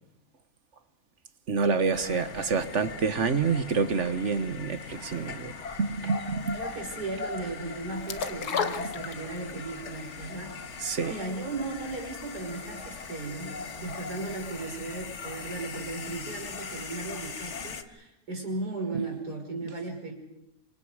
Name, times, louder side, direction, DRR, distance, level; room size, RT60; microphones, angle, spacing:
voice 1, 1.5-5.5 5.8-6.6 10.8-11.1 18.9-19.0, right 5 dB, 50° right, 1.5 m, -27 dB
sound 1, 1.9-17.8, left 5 dB, 50° left, 1.5 m, -40 dB
voice 2, 6.5-10.6 11.1-20.1, right 3 dB, 75° right, 5.8 m, -36 dB
sound 2, 8.1-9.6 10.0-10.1, left 6 dB, 70° left, 1.8 m, -31 dB
27.5 x 26.5 x 4.9 m
omnidirectional pair, 1.7 m